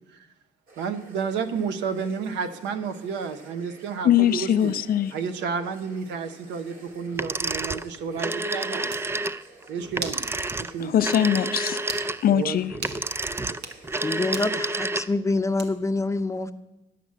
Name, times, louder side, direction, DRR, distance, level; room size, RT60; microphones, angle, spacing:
sound 1, 0.7-14.9, right 2 dB, 50° right, 2.9 m, -51 dB
voice 1, 0.8-4.7 5.1-9.2 9.7-10.3 10.6-11.0 12.3-12.6, right 6 dB, 90° right, 0.8 m, -31 dB
voice 2, 4.0-5.1 10.8-11.8 12.2-12.7, left 10 dB, 55° left, 0.5 m, -21 dB
sound 2, 7.1-15.3, right 2 dB, 15° right, 0.3 m, -29 dB
sound 3, 8.9-9.1 10.0-10.3 10.6-10.7 11.1-11.3 11.8-12.1 12.8-13.0 13.5-13.8 14.3-14.5 15.6-15.9, right 5 dB, 70° right, 1.2 m, -36 dB
voice 3, 14.0-16.5, left 2 dB, 15° left, 0.7 m, -26 dB
11.0 x 5.9 x 7.4 m
cardioid pair, 85°, 18 cm